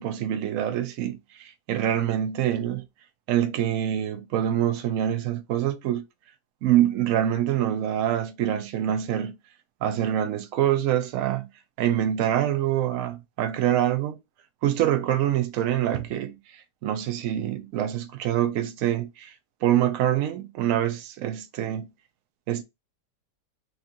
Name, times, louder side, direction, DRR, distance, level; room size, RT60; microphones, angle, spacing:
voice 1, 0.0-2.8 3.3-6.0 6.6-9.4 9.8-11.5 11.8-14.2 14.6-16.3 16.8-19.3 19.6-21.9 22.5-22.6, right 11 dB, 65° right, 0.9 m, -25 dB
4.3 x 2.5 x 2.7 m
omnidirectional pair, 1.8 m